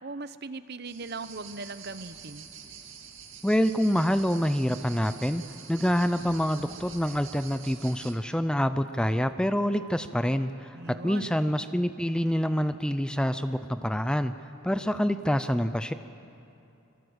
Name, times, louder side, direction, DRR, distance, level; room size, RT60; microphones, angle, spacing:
voice 1, 0.0-2.5 10.7-11.4, right 3 dB, 50° right, 13 dB, 0.8 m, -39 dB
sound 1, 0.9-8.1, right 7 dB, 65° right, 2.3 m, -46 dB
voice 2, 3.4-5.4 5.7-14.3 14.6-15.9, equal, 5° left, 10 dB, 0.5 m, -26 dB
25.0 x 22.0 x 8.1 m, 2.7 s
head